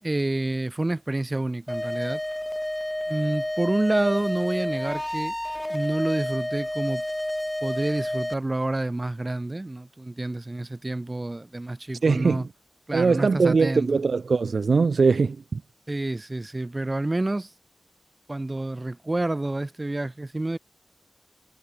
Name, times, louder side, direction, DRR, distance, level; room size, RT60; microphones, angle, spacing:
voice 1, 0.0-2.2 3.1-5.3 5.7-7.0 7.6-12.5 12.9-14.0 15.9-17.5 18.3-20.6, right 2 dB, 30° right, 4.6 m, -28 dB
sound 1, 1.7-8.3, left 1 dB, 15° left, 7.4 m, -30 dB
voice 2, 12.0-12.5 12.9-15.6, right 4 dB, 85° right, 0.7 m, -21 dB
wide cardioid pair, 60°, 0 cm